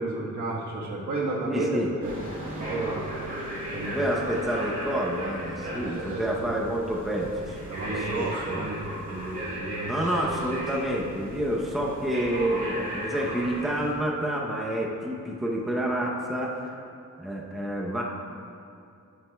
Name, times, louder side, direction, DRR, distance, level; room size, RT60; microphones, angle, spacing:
voice 1, 0.0-2.2 2.6-3.0 3.7-4.3 5.6-6.8 7.7-10.3, right 2 dB, 65° right, -3 dB, 1.4 m, -32 dB
voice 2, 1.5-1.9 3.8-7.6 7.8-8.7 9.9-16.8 17.2-18.0, right 1 dB, ahead, -3 dB, 0.7 m, -29 dB
sound 1, 2.0-13.9, equal, 25° right, 2.1 m, -36 dB
11.5 x 9.2 x 2.3 m, 2.5 s
wide cardioid pair, 150°, 32 cm